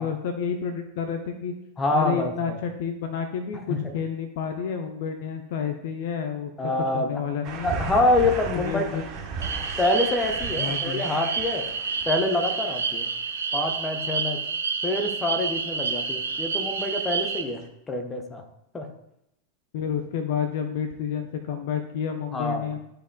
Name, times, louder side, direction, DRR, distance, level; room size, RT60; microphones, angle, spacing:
voice 1, 0.0-1.5 1.9-6.5 6.9-7.8 8.5-9.0 10.6-11.0 19.7-22.8, left 7 dB, 50° left, 6 dB, 0.6 m, -30 dB
voice 2, 1.8-2.6 3.7-3.9 6.6-7.2 7.6-8.9 9.8-11.7 12.0-13.1 13.5-14.4 14.8-17.6 17.9-18.4 18.7-18.9 22.3-22.7, left 2 dB, 15° left, 4 dB, 1.0 m, -26 dB
sound 1, 7.4-13.8 15.9-16.4 16.8-17.4 17.6-17.7, right 4 dB, 35° right, 1.0 m, -36 dB
sound 2, 9.4-17.4, right 5 dB, 70° right, 0.8 m, -29 dB
12.5 x 4.8 x 2.3 m, 0.81 s
figure-of-eight pair, 90°, 0 cm